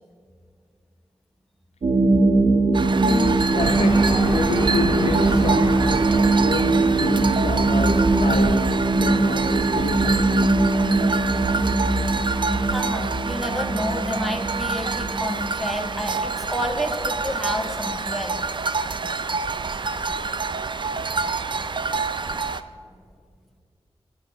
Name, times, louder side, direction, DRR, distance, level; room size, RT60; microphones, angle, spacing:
sound 1, 1.8-16.2, right 2 dB, 70° right, 1.5 m, -21 dB
sound 2, 2.7-22.6, right 4 dB, 50° right, 0.5 m, -27 dB
voice 1, 3.0-10.7, left 4 dB, 85° left, 0.7 m, -29 dB
sound 3, 3.6-8.6 9.2-9.3, right 1 dB, 25° right, 1.8 m, -32 dB
voice 2, 12.7-18.4 22.9-23.0, equal, ahead, 1.5 m, -30 dB
21.5 x 8.1 x 5.0 m
wide cardioid pair, 100°, 11 cm